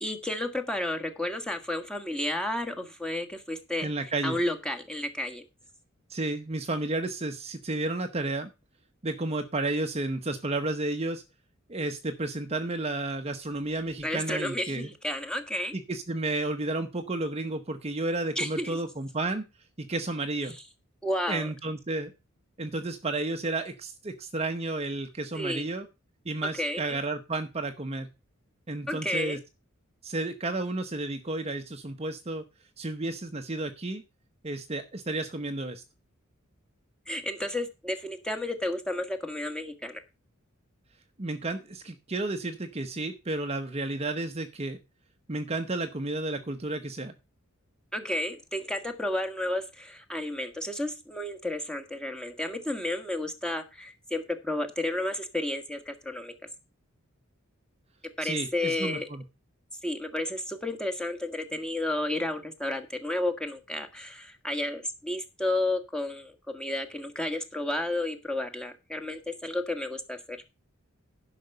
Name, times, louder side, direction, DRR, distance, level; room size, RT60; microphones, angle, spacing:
voice 1, 0.0-5.4 14.0-15.7 18.3-18.8 21.0-21.5 25.3-25.7 26.6-27.0 28.9-29.4 37.1-40.0 47.9-56.3 58.2-59.1 59.8-70.4, left 1 dB, 5° left, 4 dB, 1.5 m, -32 dB
voice 2, 3.8-4.4 6.1-8.5 9.0-11.2 11.7-14.9 15.7-19.4 19.8-20.6 21.3-22.1 22.6-25.9 26.2-28.1 28.7-29.4 30.0-32.4 32.8-34.0 34.4-35.8 41.2-44.8 45.3-47.1 58.2-59.2, right 2 dB, 30° right, 7 dB, 0.8 m, -32 dB
10.5 x 5.9 x 6.6 m, 0.27 s
head